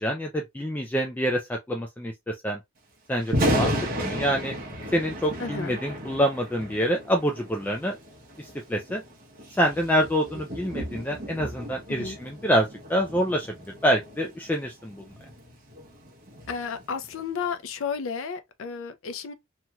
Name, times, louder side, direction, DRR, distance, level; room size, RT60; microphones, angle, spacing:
voice 1, 0.0-2.6 3.1-4.5 4.9-8.0 8.4-9.0 9.5-13.5 13.8-15.1, equal, 10° left, 0.3 m, -26 dB
Thunder, 3.2-17.3, equal, 45° right, 0.9 m, -34 dB
voice 2, 5.4-5.8 11.9-12.2 16.5-19.3, left 5 dB, 85° left, 0.5 m, -32 dB
2.9 x 2.8 x 2.3 m
head